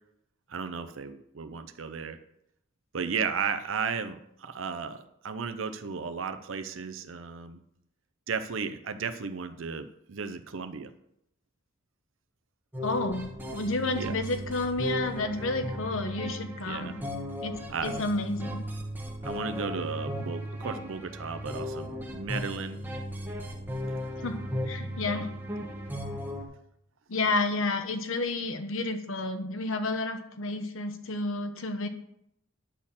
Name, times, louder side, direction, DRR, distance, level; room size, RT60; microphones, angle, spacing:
voice 1, 0.5-2.2 2.9-7.6 8.3-10.9 14.0-14.1 16.6-17.0 17.7-18.0 19.2-22.8, right 5 dB, 70° right, 9 dB, 0.6 m, -34 dB
sound 1, 12.7-26.4, left 1 dB, 10° right, 1.2 m, -36 dB
voice 2, 12.8-17.0 17.4-17.6 17.8-18.6 24.2-24.4 24.7-25.3 27.1-31.9, left 2 dB, 70° left, 8 dB, 1.0 m, -30 dB
10.0 x 4.3 x 7.2 m, 0.76 s
head